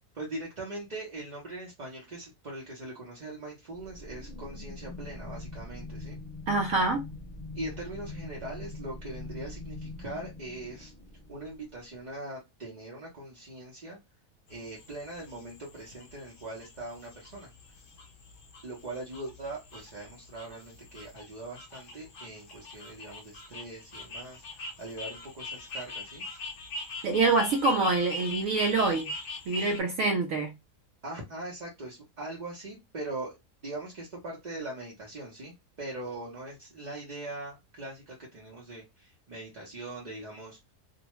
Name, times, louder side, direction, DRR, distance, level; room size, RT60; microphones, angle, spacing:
voice 1, 0.1-6.2 7.5-10.9 11.3-14.0 14.5-17.5 18.6-26.2 31.0-33.4 33.6-40.7, right 2 dB, 40° right, 0.7 m, -41 dB
sound 1, 3.7-12.0, left 2 dB, 30° left, 1.3 m, -43 dB
voice 2, 6.5-7.0 27.0-29.1 29.5-30.5, right 3 dB, 70° right, 0.9 m, -26 dB
sound 2, 14.5-29.8, left 1 dB, 65° left, 0.5 m, -42 dB
2.6 x 2.1 x 3.0 m
omnidirectional pair, 1.6 m